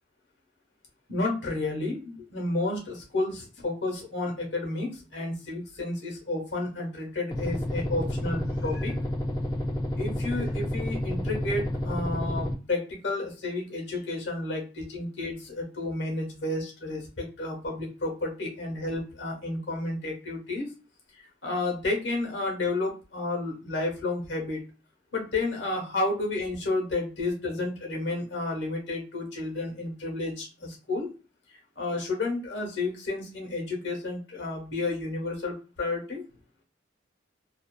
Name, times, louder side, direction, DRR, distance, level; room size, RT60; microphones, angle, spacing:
voice 1, 1.1-9.0 10.0-20.7 21.4-24.6 25.1-31.1 31.8-36.2, left 2 dB, 85° left, 0 dB, 1.2 m, -31 dB
sound 1, 7.3-12.5, equal, 20° left, 0.4 m, -30 dB
2.7 x 2.5 x 2.2 m, 0.34 s
head